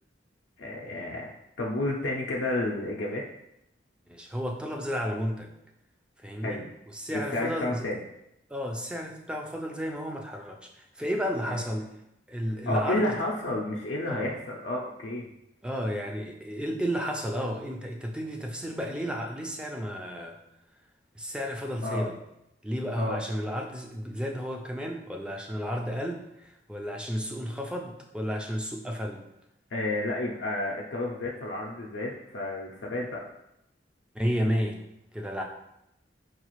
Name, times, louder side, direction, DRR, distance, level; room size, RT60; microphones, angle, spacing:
voice 1, 0.6-1.3 1.6-3.3 6.4-6.7 7.1-8.0 11.5-11.6 12.7-15.3 21.8-22.1 23.0-23.2 29.7-33.2, left 1 dB, 85° left, -3 dB, 0.5 m, -31 dB
voice 2, 4.1-5.5 6.2-6.6 6.9-7.9 8.5-10.7 11.0-11.9 12.3-13.1 14.1-14.3 15.6-20.4 21.2-22.2 22.6-29.2 34.2-34.8 35.1-35.4, equal, 5° right, 1 dB, 0.3 m, -32 dB
4.8 x 2.4 x 3.0 m, 0.84 s
head